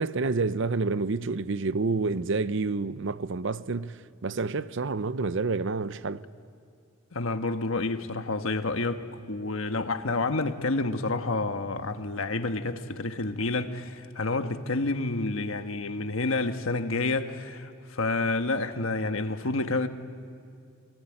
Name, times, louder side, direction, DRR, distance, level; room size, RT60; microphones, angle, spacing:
voice 1, 0.0-6.2, right 3 dB, 65° right, 0.7 m, -28 dB
voice 2, 7.1-9.0 9.3-19.9, left 3 dB, 80° left, 1.3 m, -29 dB
28.0 x 20.0 x 8.9 m
head